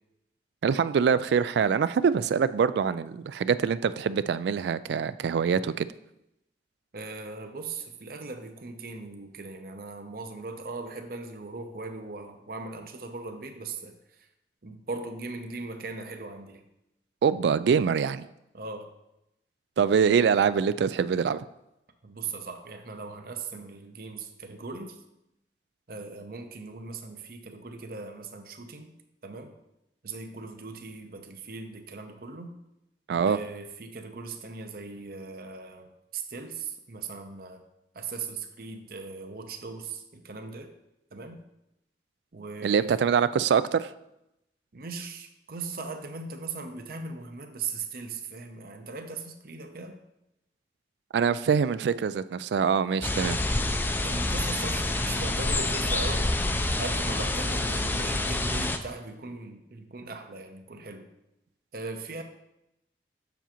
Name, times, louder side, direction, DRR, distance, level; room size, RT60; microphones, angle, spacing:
voice 1, 0.6-5.9 17.2-18.3 19.8-21.4 33.1-33.4 42.6-43.9 51.1-53.4, right 6 dB, 75° right, 15 dB, 0.3 m, -24 dB
voice 2, 6.9-14.3 14.6-16.6 18.5-18.9 22.0-25.0 25.9-28.9 29.2-29.6 30.0-32.6 33.3-37.6 37.9-40.7 41.1-41.4 42.3-42.9 44.7-50.0 54.0-61.1 61.7-62.2, right 4 dB, 55° right, 6 dB, 0.7 m, -39 dB
sound 1, 53.0-58.8, left 2 dB, 10° left, 0.4 m, -27 dB
7.1 x 6.8 x 3.0 m, 0.84 s
head